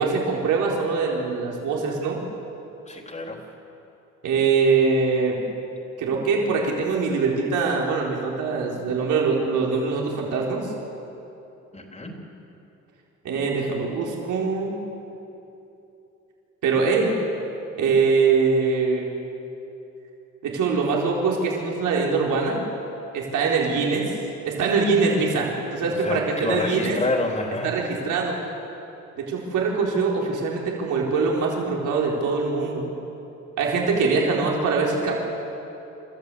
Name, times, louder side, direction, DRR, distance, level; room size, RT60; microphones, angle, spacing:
voice 1, 0.0-2.2 4.2-5.4 6.0-10.7 13.2-14.8 16.6-17.2 17.8-19.1 20.4-22.6 23.1-24.1 24.5-27.0 27.6-28.4 29.2-32.9 33.6-35.1, right 4 dB, 80° right, -2 dB, 4.2 m, -23 dB
voice 2, 2.8-3.4 11.7-12.2 25.9-27.7, left 2 dB, 20° left, 2 dB, 3.7 m, -28 dB
29.0 x 13.5 x 8.5 m, 2.9 s
cardioid pair, 90°, 30 cm